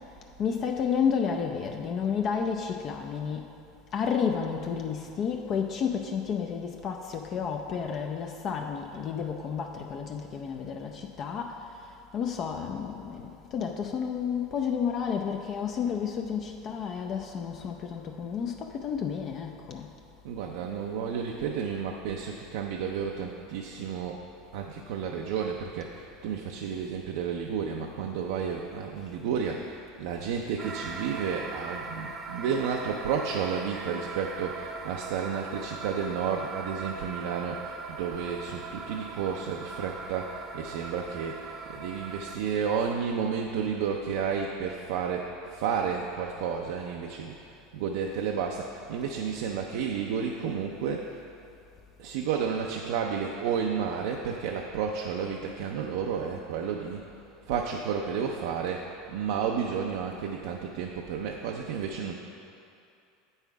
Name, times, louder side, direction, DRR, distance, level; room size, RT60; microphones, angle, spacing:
voice 1, 0.4-3.5 3.9-11.6 12.1-19.9, left 7 dB, 45° left, 2 dB, 0.5 m, -31 dB
voice 2, 20.2-24.2 24.5-51.2 52.0-57.0 57.5-62.1, right 6 dB, 75° right, 1 dB, 0.5 m, -31 dB
sound 1, 30.6-42.4, right 4 dB, 35° right, 0.7 m, -40 dB
8.1 x 5.6 x 4.6 m, 2.6 s
supercardioid pair, 105°, 0 cm